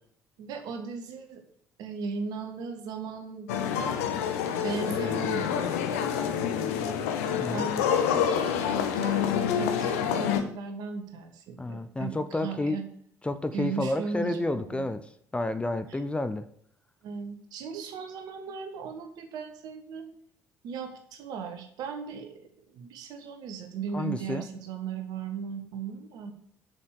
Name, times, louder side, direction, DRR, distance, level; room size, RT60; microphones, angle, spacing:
voice 1, 0.4-1.4 1.8-3.5 3.8-4.0 4.5-7.0 7.5-12.9 13.5-14.8 15.9-16.0 17.0-20.1 20.6-26.3, right 5 dB, 55° right, 5 dB, 1.6 m, -37 dB
sound 1, 3.5-10.4, left 8 dB, 65° left, 0.9 m, -27 dB
voice 2, 11.6-12.8 13.2-15.0 15.3-16.5 23.9-24.5, left 2 dB, 15° left, 10 dB, 0.7 m, -30 dB
7.1 x 6.7 x 7.2 m, 0.65 s
figure-of-eight pair, 50°, 8 cm